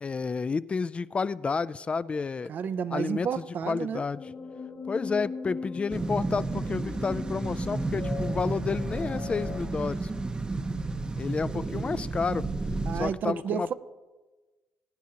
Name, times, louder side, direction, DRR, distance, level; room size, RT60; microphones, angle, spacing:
voice 1, 0.0-2.5 2.9-3.3 3.7-4.2 4.9-10.1 11.1-12.5 12.9-13.7, left 5 dB, 30° left, 0.3 m, -30 dB
voice 2, 2.5-4.0 11.5-11.6 12.9-13.7, right 7 dB, 60° right, 0.5 m, -31 dB
sound 1, 4.1-9.6, left 4 dB, 55° left, 1.7 m, -39 dB
sound 2, 5.9-13.1, right 3 dB, 25° right, 0.7 m, -32 dB
21.0 x 9.2 x 2.9 m
supercardioid pair, 75°, 4 cm